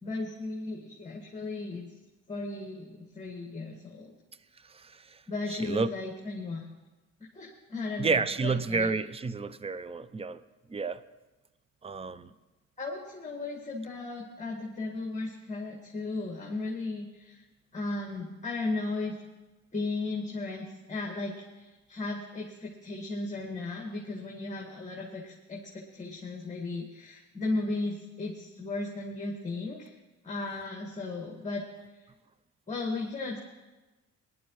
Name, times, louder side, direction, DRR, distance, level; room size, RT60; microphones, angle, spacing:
voice 1, 0.0-1.9 2.3-4.1 5.3-6.7 7.3-8.9 12.8-17.4 17.7-19.2 19.7-29.9 30.2-31.7 32.7-33.4, left 2 dB, 25° left, 0 dB, 1.8 m, -35 dB
voice 2, 4.7-5.2 5.5-5.9 8.0-10.4 10.7-11.0 11.8-12.3, right 4 dB, 20° right, 15 dB, 0.5 m, -30 dB
20.0 x 11.0 x 3.1 m, 1.2 s
cardioid pair, 90°, 30 cm